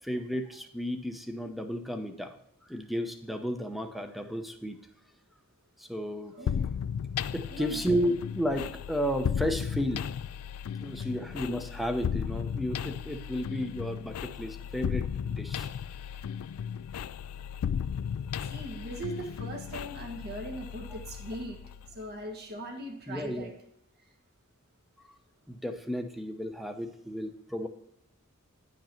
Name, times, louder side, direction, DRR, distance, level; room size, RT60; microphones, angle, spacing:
voice 1, 0.0-4.8 5.8-6.3 7.3-10.1 10.8-15.7 20.9-21.0 23.1-23.5 25.1-25.2 25.5-27.7, equal, ahead, 6 dB, 0.7 m, -33 dB
voice 2, 6.3-6.7 7.5-7.8 17.9-21.6 21.9-23.5, right 1 dB, 50° right, 2 dB, 1.6 m, -40 dB
sound 1, 6.5-22.1, left 7 dB, 75° left, 0.3 m, -35 dB
10.5 x 5.3 x 4.4 m, 0.78 s
head